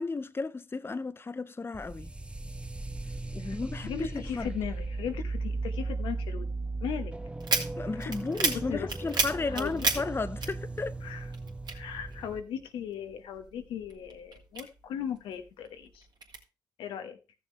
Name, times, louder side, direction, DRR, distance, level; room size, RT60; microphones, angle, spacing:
voice 1, 0.0-2.1 3.3-4.5 7.8-11.0, left 3 dB, 30° left, 0.6 m, -34 dB
sound 1, 1.7-12.4, right 3 dB, 15° right, 0.6 m, -37 dB
voice 2, 3.4-6.5 6.8-7.1 7.8-8.0 8.5-8.9 9.5-9.9 11.0-11.3 11.7-16.1 16.8-17.2, left 8 dB, 85° left, 1.1 m, -38 dB
sound 2, 7.4-11.1 11.3-12.7 13.1-15.2 15.6-16.4, right 4 dB, 60° right, 2.2 m, -31 dB
14.5 x 6.7 x 3.2 m
supercardioid pair, 50°, 8 cm